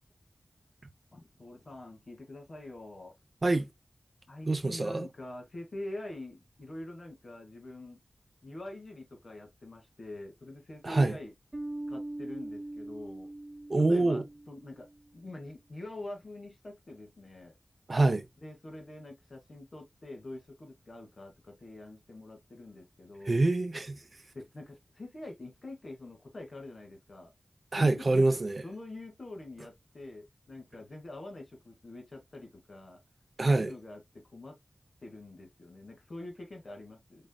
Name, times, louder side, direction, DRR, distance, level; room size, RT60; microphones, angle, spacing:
voice 1, 1.1-3.1 4.3-8.0 8.4-11.3 11.9-13.3 13.8-14.9 15.1-17.5 18.4-23.4 24.3-27.3 27.8-28.2 28.6-33.0 33.5-34.6 35.0-37.3, left 2 dB, 55° left, 2.2 m, -45 dB
voice 2, 4.5-5.1 10.8-11.2 13.7-14.2 17.9-18.3 23.3-24.0 27.7-28.6 33.4-33.7, right 2 dB, 45° right, 0.7 m, -25 dB
Bass guitar, 11.5-15.0, right 1 dB, 25° right, 2.2 m, -41 dB
5.3 x 3.8 x 2.3 m
wide cardioid pair, 95°, 0 cm